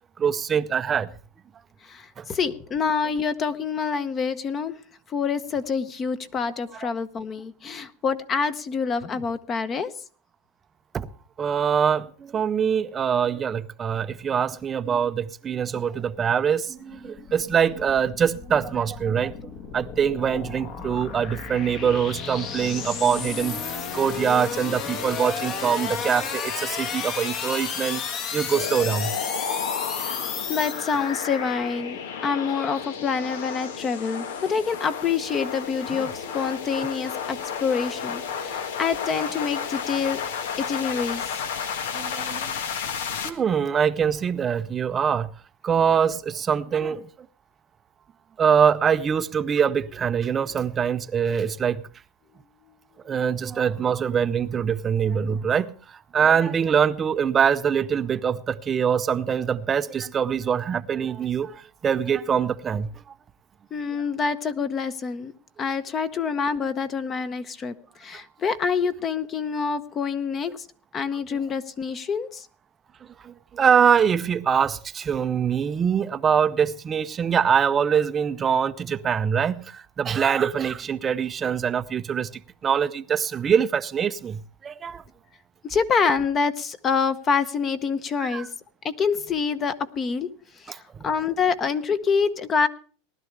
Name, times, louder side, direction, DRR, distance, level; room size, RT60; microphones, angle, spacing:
voice 1, 0.2-1.1 2.2-2.3 10.9-11.1 11.4-29.1 41.9-42.5 43.2-45.3 45.6-47.1 48.4-51.8 53.0-62.9 73.2-82.3 82.6-85.0 88.2-88.5 90.7-91.1, right 7 dB, 20° right, 0.6 m, -24 dB
voice 2, 1.8-4.8 5.1-9.9 29.9-40.2 40.7-41.3 63.7-65.3 65.6-70.7 70.9-72.5 85.6-88.5 88.8-90.3 90.6-92.7, left 5 dB, 25° left, 0.9 m, -26 dB
sound 1, 16.8-31.4, left 6 dB, 40° left, 1.3 m, -33 dB
sound 2, 28.5-43.3, left 7 dB, 90° left, 1.5 m, -32 dB
19.0 x 12.0 x 3.3 m
supercardioid pair, 150°, 0 cm